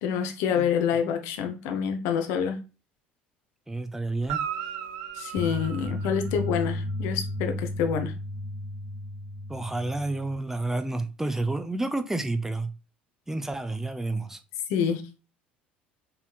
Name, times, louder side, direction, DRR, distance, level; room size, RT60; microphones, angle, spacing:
voice 1, 0.0-2.6 5.2-8.1 14.7-15.0, left 7 dB, 55° left, 0.7 m, -27 dB
voice 2, 3.7-4.5 9.5-12.7 13.3-14.4, right 2 dB, 5° right, 0.5 m, -30 dB
Guitar, 4.2-6.8 10.7-10.8, right 9 dB, 60° right, 0.5 m, -36 dB
sound 1, 5.4-10.4, left 1 dB, 15° left, 1.5 m, -34 dB
4.6 x 3.4 x 2.4 m
figure-of-eight pair, 60°, 6 cm